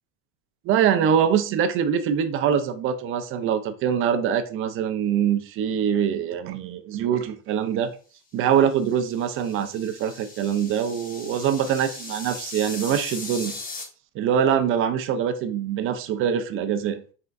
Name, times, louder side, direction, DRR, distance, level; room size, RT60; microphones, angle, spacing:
voice 1, 0.7-7.9 8.3-13.6 14.2-17.0, right 8 dB, 35° right, 10 dB, 0.4 m, -24 dB
sound 1, 8.7-13.8, left 3 dB, 20° left, 0.7 m, -39 dB
4.3 x 3.4 x 2.5 m, 0.38 s
supercardioid pair, 130°, 40 cm